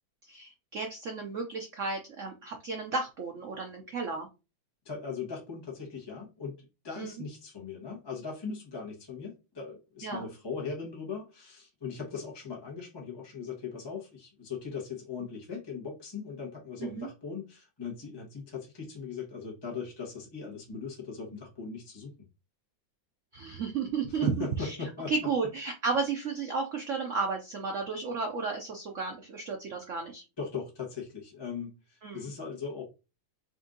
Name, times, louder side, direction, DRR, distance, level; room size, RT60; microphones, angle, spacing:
voice 1, 0.3-4.3 7.0-7.2 10.0-10.3 16.8-17.1 23.3-24.8 25.1-30.2 32.0-32.3, right 4 dB, 90° right, 0.6 m, -33 dB
voice 2, 4.8-6.6 6.8-22.1 24.1-25.1 30.4-32.9, left 5 dB, 20° left, 0.7 m, -39 dB
4.2 x 2.6 x 3.7 m
omnidirectional pair, 2.2 m